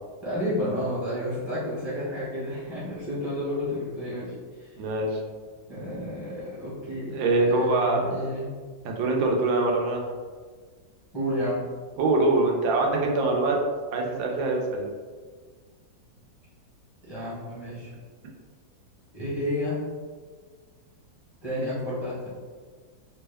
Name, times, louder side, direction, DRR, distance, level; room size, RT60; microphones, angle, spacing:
voice 1, 0.2-4.7 5.7-8.5 11.1-11.6 17.0-17.9 19.1-19.8 21.4-22.3, equal, 20° left, -10 dB, 0.6 m, -31 dB
voice 2, 4.8-5.2 7.1-8.0 8.8-10.0 12.0-13.6 13.9-14.9, right 2 dB, 90° right, 0 dB, 1.4 m, -24 dB
3.3 x 2.1 x 3.3 m, 1.5 s
omnidirectional pair, 2.0 m